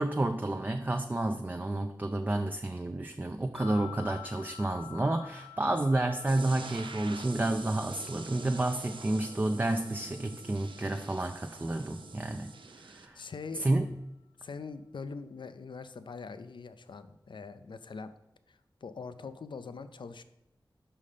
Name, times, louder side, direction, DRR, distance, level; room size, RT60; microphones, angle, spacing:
voice 1, 0.0-12.5 12.8-13.2 13.6-13.9, right 2 dB, 20° right, 5 dB, 0.4 m, -30 dB
sound 1, 3.5-12.8, left 12 dB, ahead, 1.0 m, -51 dB
sound 2, 6.3-13.1, right 4 dB, 85° right, 0.5 m, -46 dB
voice 2, 13.1-13.7 14.4-18.1 18.5-20.2, left 4 dB, 75° left, 12 dB, 0.4 m, -43 dB
5.5 x 5.4 x 5.0 m, 0.90 s
wide cardioid pair, 70°, 8 cm